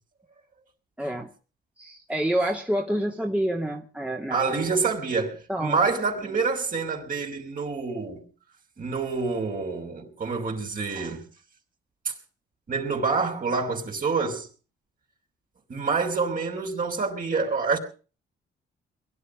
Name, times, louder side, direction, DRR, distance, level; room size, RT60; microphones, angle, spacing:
voice 1, 1.0-1.3 1.8-4.4 5.5-5.8 6.2-6.4, right 1 dB, 5° right, 2.7 m, -28 dB
voice 2, 4.3-8.2 8.8-11.3 12.0-12.1 12.7-14.5 15.7-17.8, right 4 dB, 45° right, 5.9 m, -27 dB
22.5 x 12.0 x 5.4 m
cardioid pair, 90°, 20 cm